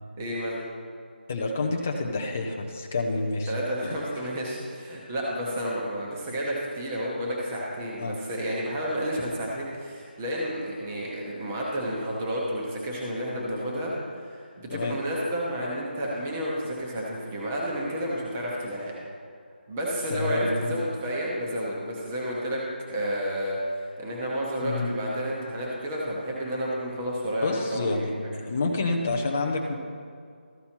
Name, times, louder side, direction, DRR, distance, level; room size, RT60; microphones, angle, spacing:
voice 1, 0.2-0.6 3.5-18.9 19.7-22.6 22.9-28.3, equal, 10° right, -4 dB, 0.7 m, -31 dB
voice 2, 1.3-3.5 3.8-3.9 8.0-8.2 14.7-15.0 20.1-20.7 24.6-24.9 27.4-28.1 28.4-29.7, left 3 dB, 10° left, 0 dB, 0.3 m, -28 dB
13.5 x 5.4 x 4.4 m, 2.2 s
figure-of-eight pair, 175°, 6 cm